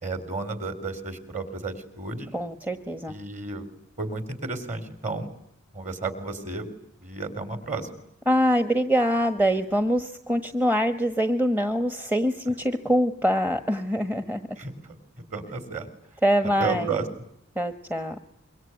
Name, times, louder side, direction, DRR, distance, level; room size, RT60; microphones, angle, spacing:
voice 1, 0.0-2.3 3.1-3.6 4.0-5.3 5.7-6.7 7.0-7.9 14.6-14.9 15.3-15.9 16.6-17.0, right 4 dB, 35° right, 11 dB, 4.3 m, -32 dB
voice 2, 2.3-3.1 8.3-14.4 16.2-16.9 17.5-18.2, equal, 10° right, 10 dB, 1.3 m, -24 dB
26.0 x 24.0 x 9.5 m, 0.71 s
head